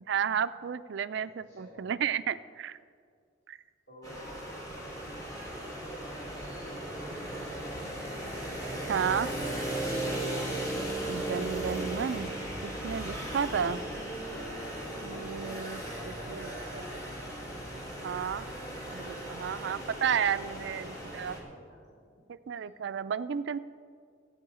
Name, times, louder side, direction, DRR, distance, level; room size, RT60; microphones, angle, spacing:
voice 1, 0.1-2.8 3.5-3.6 8.9-9.3 11.1-12.3 12.6-13.8 15.0-16.5 18.0-18.5 18.9-21.3 22.3-23.6, right 7 dB, 65° right, 15 dB, 0.4 m, -32 dB
voice 2, 1.4-2.0 3.9-4.4 5.7-7.9 14.1-14.6 16.0-17.5 20.4-22.0, equal, 65° left, -8 dB, 2.5 m, -52 dB
sound 1, 4.0-21.4, right 1 dB, 20° left, 2.0 m, -37 dB
14.5 x 8.7 x 4.9 m, 2.2 s
head